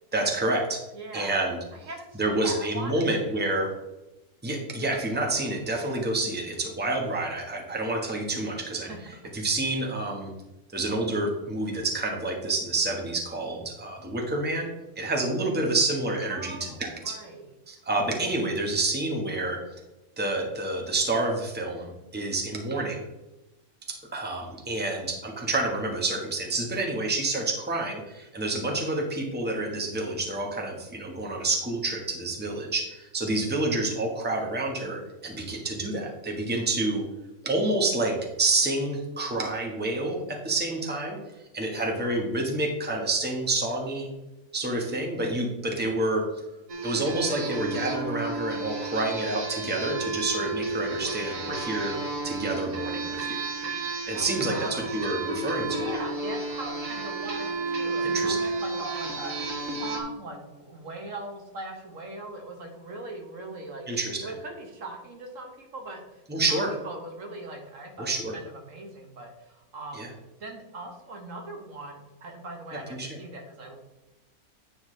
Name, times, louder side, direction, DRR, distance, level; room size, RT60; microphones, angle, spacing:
voice 1, 0.1-0.8 1.1-1.6 2.1-3.7 4.4-8.9 9.3-10.3 10.7-14.7 15.0-17.2 17.7-19.6 20.2-23.0 23.9-37.0 37.4-41.2 41.5-44.1 44.5-46.2 46.8-51.9 52.2-53.4 54.1-56.0 58.0-58.4 63.9-64.2 66.3-66.7 68.0-68.3 69.9-70.1 73.0-73.2, right 2 dB, 5° right, 0 dB, 1.2 m, -28 dB
voice 2, 0.9-1.3 1.7-3.4 8.9-9.0 16.3-17.5 41.8-42.2 54.1-55.0 55.5-63.9 64.2-66.2 66.5-66.6 66.8-70.1 70.4-73.8, right 2 dB, 60° right, 2 dB, 1.5 m, -40 dB
sound 1, 46.7-60.0, right 3 dB, 85° right, 1.9 m, -32 dB
9.7 x 5.8 x 3.2 m, 1.0 s
omnidirectional pair, 1.6 m